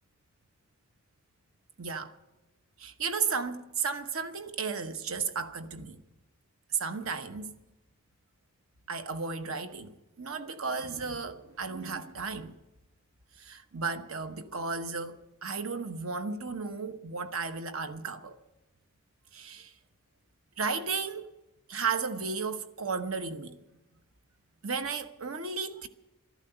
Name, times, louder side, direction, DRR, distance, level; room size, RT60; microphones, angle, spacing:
voice 1, 1.8-2.1 2.8-6.0 6.8-7.5 8.9-12.5 13.4-18.4 19.3-19.7 20.6-21.3 21.7-23.6 24.6-25.9, right 5 dB, 80° right, 1.0 m, -34 dB
13.5 x 11.5 x 7.9 m
head